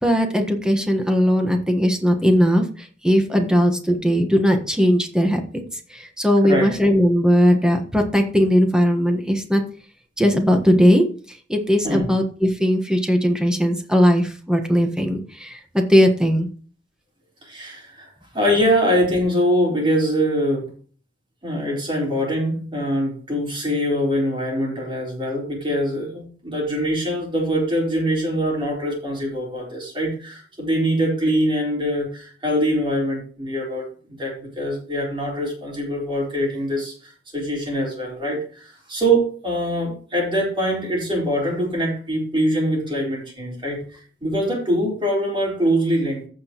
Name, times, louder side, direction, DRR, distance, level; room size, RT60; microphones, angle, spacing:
voice 1, 0.0-5.6 5.9-9.6 10.2-16.5, equal, 5° right, 4 dB, 1.4 m, -19 dB
voice 2, 6.4-6.8 11.8-12.1 17.4-20.7 21.4-43.8 44.2-46.3, equal, 30° right, -2 dB, 4.3 m, -23 dB
15.0 x 6.2 x 3.1 m, 0.42 s
head